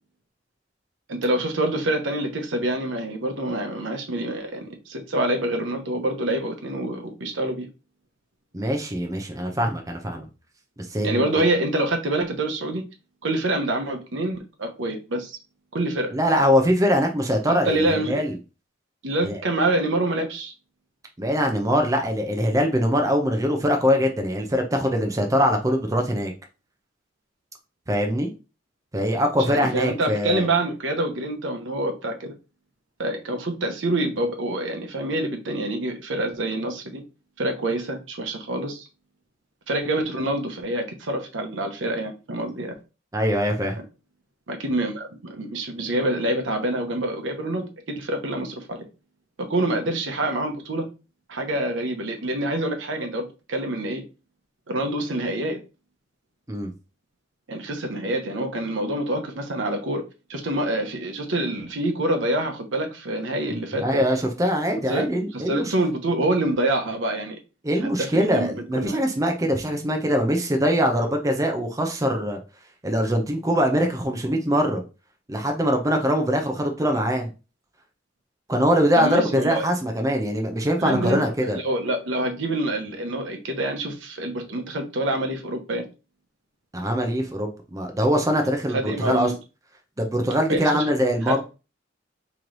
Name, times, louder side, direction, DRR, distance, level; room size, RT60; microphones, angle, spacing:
voice 1, 1.1-7.7 11.0-12.8 13.2-15.4 15.7-16.1 17.5-18.2 19.0-20.5 29.5-32.3 33.0-37.0 37.4-38.9 39.7-42.8 44.5-48.8 49.4-50.9 51.3-54.0 54.7-55.6 57.5-60.0 60.3-64.0 64.9-65.1 65.3-67.4 67.8-69.0 78.9-79.6 80.8-81.3 81.5-85.8 88.7-89.4 90.5-90.8 91.3-91.4, right 1 dB, 80° right, 0.9 m, -26 dB
voice 2, 8.5-10.3 10.9-11.4 16.1-18.3 19.2-19.4 21.2-26.3 27.9-28.3 28.9-30.5 43.1-43.8 56.5-56.7 63.7-65.7 67.6-72.4 72.8-74.8 75.3-77.3 78.5-81.6 86.7-89.3 90.0-91.4, equal, 20° right, 0.6 m, -23 dB
3.1 x 3.1 x 3.9 m
head